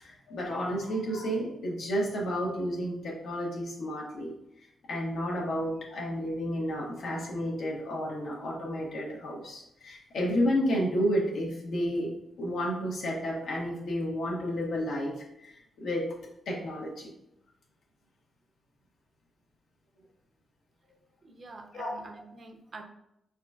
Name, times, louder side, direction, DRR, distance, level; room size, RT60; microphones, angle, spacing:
voice 1, 0.0-4.3 4.9-12.1 12.4-16.1 16.5-17.1 21.7-21.9, equal, 80° left, -2 dB, 1.4 m, -31 dB
voice 2, 21.2-22.8, right 3 dB, 40° right, 3 dB, 0.7 m, -46 dB
5.3 x 4.1 x 2.4 m, 0.79 s
wide cardioid pair, 130°, 0 cm